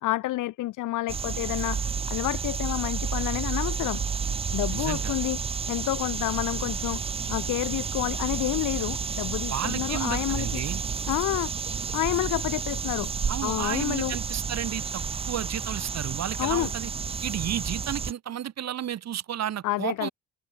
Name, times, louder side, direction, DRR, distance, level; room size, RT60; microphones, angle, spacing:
voice 1, 0.0-4.0 4.5-5.4 5.7-7.0 7.3-10.6 11.1-11.5 11.9-13.1 13.4-14.2 16.4-16.7 19.6-20.1, left 16 dB, 90° left, 1.6 m, -29 dB
sound 1, 1.1-18.1, right 6 dB, 20° right, 0.4 m, -31 dB
voice 2, 4.7-5.2 9.5-10.8 13.3-16.9 17.2-20.1, right 10 dB, 60° right, 1.8 m, -32 dB
Subway metro underground, 6.4-14.4, right 16 dB, 90° right, 1.8 m, -48 dB
cardioid pair, 90°, 30 cm